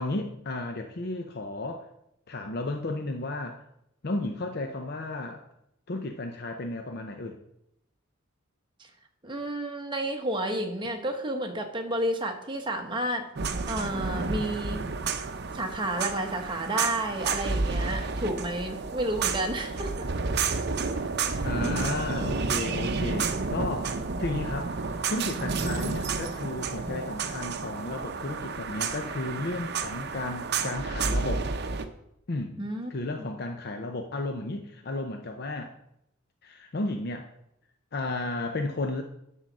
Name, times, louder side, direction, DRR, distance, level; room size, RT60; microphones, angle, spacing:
voice 1, 0.0-1.9 2.3-3.6 4.0-5.4 5.9-7.4 21.4-31.5 32.3-32.6 32.9-35.7 36.4-37.3 37.9-39.0, left 2 dB, 55° left, 4 dB, 0.7 m, -33 dB
voice 2, 9.2-13.3 13.7-14.8 15.5-20.1 32.6-32.9 33.2-33.3, right 1 dB, 25° right, 4 dB, 1.1 m, -31 dB
sound 1, 13.4-31.9, right 4 dB, 55° right, 0.7 m, -31 dB
11.5 x 4.0 x 6.2 m, 0.80 s
head